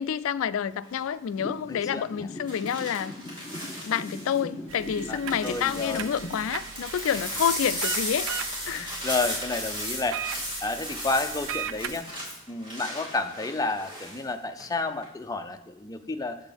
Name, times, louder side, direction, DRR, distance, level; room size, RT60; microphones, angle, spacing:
voice 1, 0.0-3.2 3.8-8.3 8.7-8.9, left 8 dB, 80° left, 0.3 m, -28 dB
sound 1, 0.8-1.2 2.5-4.4 4.9-14.2 14.6-15.0, equal, 25° right, 2.6 m, -35 dB
sound 2, 1.4-6.4, left 1 dB, 40° left, 1.1 m, -40 dB
voice 2, 1.7-2.3 5.1-6.1 8.7-10.2 10.6-12.1 12.5-16.4, left 3 dB, 15° left, 0.5 m, -31 dB
sound 3, 4.7-11.9, right 9 dB, 65° right, 0.3 m, -38 dB
8.1 x 7.4 x 3.4 m
head